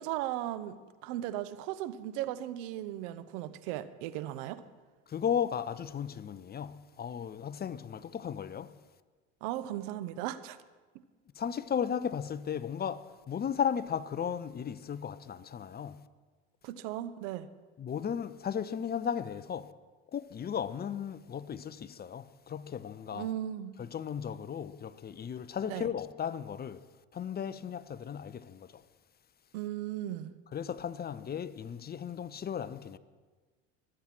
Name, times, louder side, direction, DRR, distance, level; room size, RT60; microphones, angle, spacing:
voice 1, 0.0-4.6 9.4-10.6 16.6-17.5 23.1-23.8 25.7-25.9 29.5-30.3, right 13 dB, 65° right, 1.1 m, -37 dB
voice 2, 5.1-8.8 11.3-16.1 17.8-19.7 20.1-23.3 23.8-26.8 27.1-28.8 30.5-33.0, left 8 dB, 25° left, 0.7 m, -35 dB
23.5 x 9.0 x 6.1 m
hypercardioid pair, 90°, 39 cm